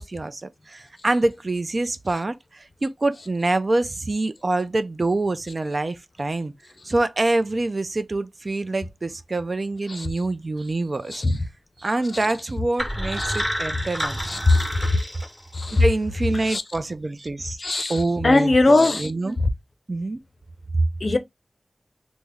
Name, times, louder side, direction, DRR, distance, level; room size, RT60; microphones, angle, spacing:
voice 1, 0.0-6.5 6.8-11.2 11.8-14.2 15.7-17.6 17.9-19.4 19.9-20.2 20.7-20.9, right 2 dB, 50° right, 0.4 m, -25 dB
sound 1, 12.8-15.8, equal, ahead, 0.7 m, -29 dB
voice 2, 14.3-14.7 15.5-15.8 16.4-16.6 17.6-19.1 21.0-21.2, left 2 dB, 55° left, 0.5 m, -20 dB
3.4 x 2.0 x 3.3 m
wide cardioid pair, 65°, 0 cm